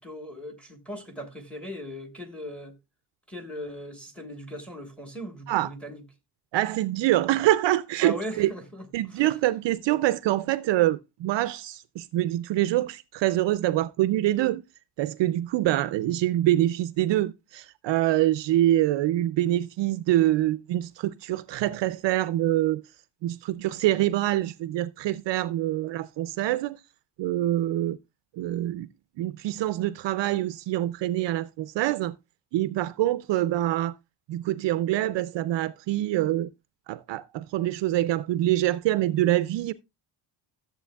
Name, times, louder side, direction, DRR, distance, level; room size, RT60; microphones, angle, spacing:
voice 1, 0.0-2.8 3.3-6.0 8.0-9.2, equal, ahead, 1.3 m, -39 dB
voice 2, 6.5-8.5 8.9-14.6 15.0-22.8 23.2-26.8 27.2-28.0 28.4-28.9 29.2-32.1 32.5-33.9 34.3-36.5 36.9-39.7, right 14 dB, 60° right, 0.5 m, -25 dB
13.5 x 7.8 x 2.3 m
cardioid pair, 160°, 49 cm